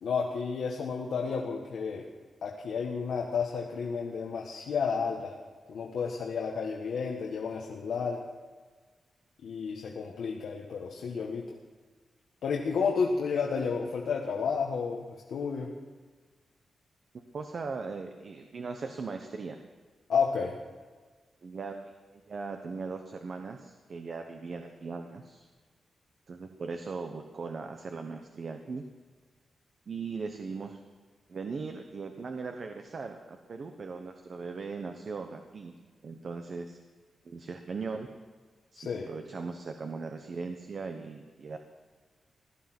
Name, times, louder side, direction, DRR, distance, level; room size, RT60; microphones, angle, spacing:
voice 1, 0.0-2.1 2.4-5.3 5.7-8.2 9.4-11.5 12.4-15.7 20.1-20.5 38.7-39.1, left 5 dB, 85° left, -1 dB, 1.5 m, -31 dB
voice 2, 17.3-19.6 21.4-21.9 22.3-25.5 26.3-28.8 29.9-30.8 31.3-35.7 36.0-36.8 37.2-38.1 38.7-41.6, right 4 dB, 50° right, 5 dB, 1.1 m, -39 dB
17.0 x 12.0 x 6.1 m, 1.4 s
wide cardioid pair, 125°, 0 cm